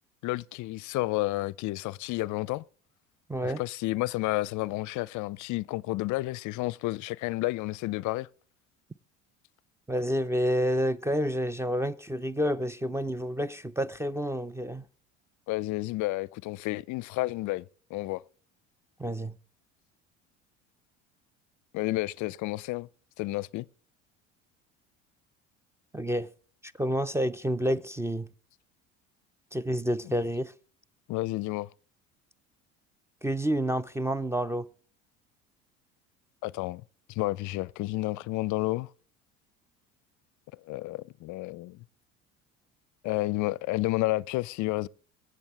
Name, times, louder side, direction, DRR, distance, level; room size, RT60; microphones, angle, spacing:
voice 1, 0.2-2.6 3.4-8.3 15.5-17.6 17.9-18.2 21.7-22.9 23.2-23.6 31.1-31.7 36.4-36.8 37.1-38.9 40.7-41.8 43.0-44.9, left 20 dB, 50° left, 0.5 m, -31 dB
voice 2, 3.3-3.6 9.9-14.9 19.0-19.3 25.9-26.3 26.6-28.3 29.5-30.5 33.2-34.7, equal, 5° right, 0.5 m, -29 dB
24.0 x 8.2 x 3.3 m
hypercardioid pair, 70°, 37 cm